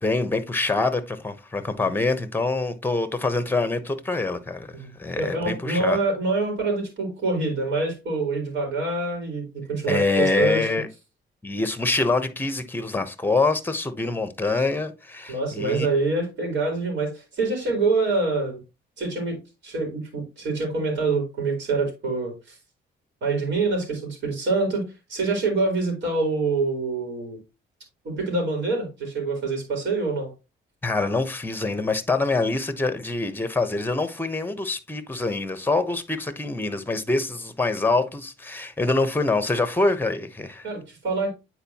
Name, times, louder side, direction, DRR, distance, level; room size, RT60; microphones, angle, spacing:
voice 1, 0.0-4.7 5.0-6.0 9.9-10.9 11.4-15.9 30.8-40.6, left 3 dB, 10° left, 1.0 m, -25 dB
voice 2, 5.2-10.7 15.3-18.6 19.0-22.6 23.2-24.8 25.1-27.4 28.0-30.3 40.6-41.3, right 3 dB, 65° right, 3.9 m, -26 dB
8.9 x 4.6 x 2.9 m
cardioid pair, 90°, 20 cm